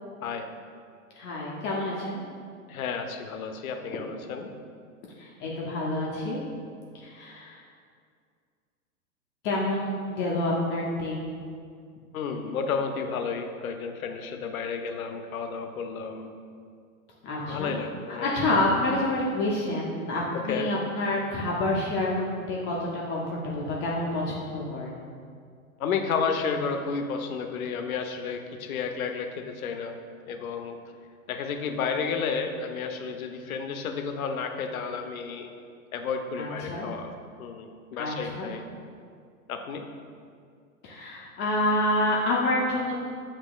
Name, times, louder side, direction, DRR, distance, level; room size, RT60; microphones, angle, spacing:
voice 1, 1.2-2.2 5.2-6.4 7.0-7.6 9.4-11.4 17.2-17.7 18.1-25.0 36.4-36.9 38.0-38.5 40.8-42.9, left 1 dB, 25° left, -4 dB, 0.5 m, -28 dB
voice 2, 2.7-4.5 12.1-16.3 17.5-18.3 20.3-20.7 25.8-30.0 30.3-30.8 31.3-35.5 35.9-37.1 37.4-38.6 39.5-39.9, left 5 dB, 70° left, 5 dB, 0.6 m, -32 dB
7.2 x 2.9 x 2.3 m, 2.2 s
hypercardioid pair, 110°, 43 cm